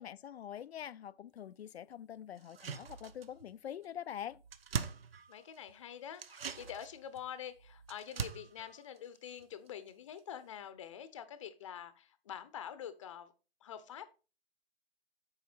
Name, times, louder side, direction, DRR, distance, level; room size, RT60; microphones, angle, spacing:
voice 1, 0.0-4.4, left 10 dB, 85° left, 0.5 m, -45 dB
sound 1, 2.4-3.5 3.8-3.9 4.2-5.7 6.1-9.9 10.2-10.3, right 6 dB, 70° right, 0.9 m, -43 dB
voice 2, 5.3-13.3 13.6-14.1, left 9 dB, 30° left, 0.7 m, -46 dB
8.5 x 4.8 x 4.4 m
hypercardioid pair, 160°, 31 cm